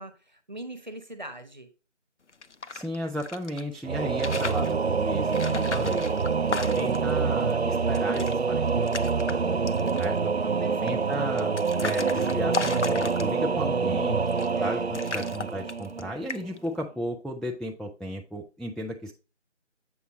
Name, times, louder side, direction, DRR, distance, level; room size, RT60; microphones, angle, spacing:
voice 1, 0.0-1.7 10.4-11.2 14.5-14.9, right 1 dB, 40° right, 9 dB, 1.1 m, -42 dB
sound 1, 2.3-3.6 4.1-4.7 5.3-7.1 7.5-7.6 7.8-8.3 8.7-9.3 9.7-10.2 10.9-13.6 14.3-14.7 14.9-16.0 16.3-16.7, left 4 dB, 70° left, 0.8 m, -35 dB
voice 2, 2.7-6.0 6.8-9.2 10.0-10.3 10.8-11.5 11.8-14.2 14.6-19.1, equal, ahead, 0 dB, 0.4 m, -34 dB
Singing / Musical instrument, 3.8-16.4, right 5 dB, 60° right, 0.6 m, -26 dB
8.0 x 5.9 x 3.1 m, 0.32 s
figure-of-eight pair, 175°, 37 cm